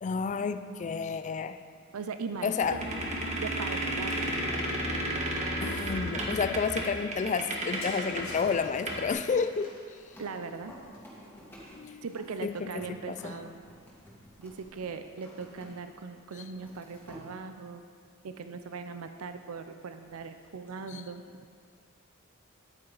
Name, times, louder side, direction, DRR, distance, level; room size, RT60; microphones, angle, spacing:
voice 1, 0.0-1.6 2.4-2.8 5.6-9.7 11.7-12.0 12.4-12.7 13.1-13.3 20.9-21.0, left 5 dB, 35° left, 10 dB, 0.4 m, -30 dB
voice 2, 1.9-2.8 3.4-4.6 10.2-10.7 12.0-13.6 14.4-17.8 18.2-21.4, right 5 dB, 85° right, 9 dB, 0.5 m, -39 dB
sound 1, 2.6-8.3 8.5-8.6 8.9-9.1, right 1 dB, 35° right, 1.2 m, -32 dB
sound 2, 7.4-11.2 12.0-12.3, left 2 dB, 90° left, 2.5 m, -49 dB
sound 3, 8.4-16.0 16.2-17.2 19.9-20.7, equal, 10° left, 2.1 m, -51 dB
10.5 x 8.8 x 4.0 m, 2.1 s
head